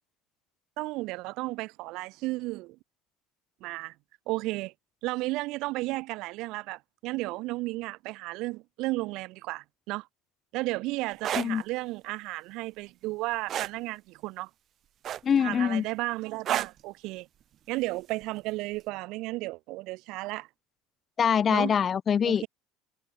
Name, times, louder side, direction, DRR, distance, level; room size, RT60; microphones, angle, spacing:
voice 1, 0.8-2.8 3.6-3.9 4.3-4.7 5.0-10.1 10.5-14.5 15.4-17.3 17.7-20.5 21.5-21.7 22.2-22.5, right 21 dB, 60° right, 0.9 m, -33 dB
sound 1, 11.1-11.5 13.5-13.8 15.0-15.5 16.5-16.8 18.2-18.4, right 10 dB, 35° right, 0.4 m, -30 dB
voice 2, 15.2-15.8 21.2-22.5, left 7 dB, 25° left, 2.3 m, -24 dB
cardioid pair, 155°, 0 cm